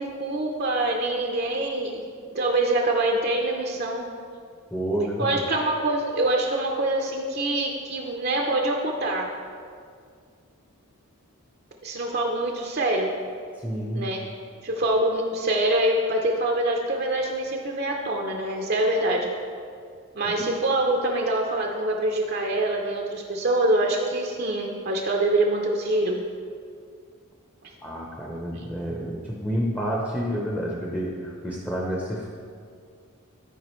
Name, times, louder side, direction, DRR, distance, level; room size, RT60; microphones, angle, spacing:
voice 1, 0.0-2.0 2.3-4.1 5.2-9.3 11.8-13.1 13.9-14.3 14.6-19.3 20.2-26.2, right 1 dB, 45° right, 0 dB, 0.6 m, -25 dB
voice 2, 4.7-5.4 13.6-14.1 20.4-20.5 27.8-32.3, equal, 10° left, -3 dB, 0.7 m, -29 dB
12.5 x 4.7 x 3.1 m, 2.2 s
head